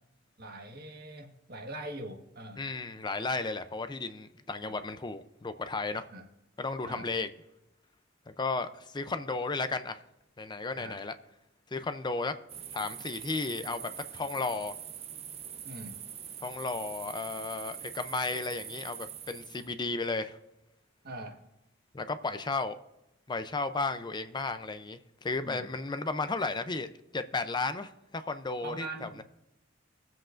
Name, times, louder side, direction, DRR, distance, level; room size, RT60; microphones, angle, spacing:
voice 1, 0.4-2.6 6.1-6.3 6.8-7.1 10.7-11.0 15.6-16.0 21.0-21.4 25.4-25.7 28.6-29.2, right 1 dB, 50° right, 2 dB, 1.5 m, -42 dB
voice 2, 2.6-6.1 6.6-7.3 8.3-10.0 10.4-11.1 11.7-12.3 12.7-14.7 16.4-20.4 21.9-22.8 23.3-29.2, left 3 dB, 25° left, 10 dB, 0.5 m, -34 dB
sound 1, 12.5-19.7, right 9 dB, 30° right, 0.5 m, -44 dB
22.0 x 7.7 x 2.5 m, 0.94 s
head